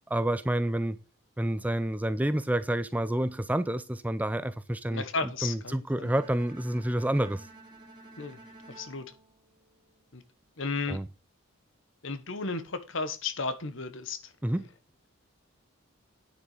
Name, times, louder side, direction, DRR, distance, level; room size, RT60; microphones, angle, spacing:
voice 1, 0.1-1.0 1.4-5.0 5.4-7.4 10.9-11.1 14.4-14.6, right 1 dB, 5° right, 0.4 m, -28 dB
voice 2, 4.9-6.1 8.2-8.4 8.7-9.1 10.1-10.2 10.6-11.0 12.0-14.2, left 3 dB, 60° left, 1.2 m, -34 dB
Bowed string instrument, 6.0-10.2, right 2 dB, 20° right, 3.0 m, -52 dB
9.5 x 6.8 x 4.9 m
head